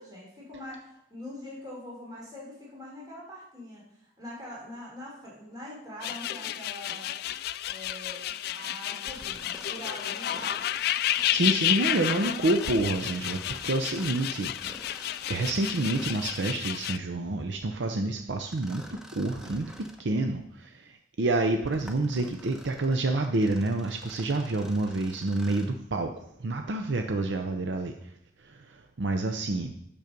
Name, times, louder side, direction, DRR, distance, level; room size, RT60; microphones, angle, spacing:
voice 1, 0.0-7.2 7.6-8.2 8.5-10.6, left 1 dB, 20° right, -6 dB, 3.3 m, -43 dB
sound 1, 6.0-17.0, left 13 dB, 60° left, 0.3 m, -31 dB
Mechanisms, 8.9-16.6 18.5-20.1 20.6-20.7 21.4-25.8, equal, 5° right, 1.0 m, -48 dB
voice 2, 11.3-14.5 14.8-15.0 15.3-26.1 26.4-27.9 28.4-29.7, right 2 dB, 80° right, 5 dB, 0.6 m, -28 dB
9.4 x 7.0 x 5.2 m, 0.78 s
head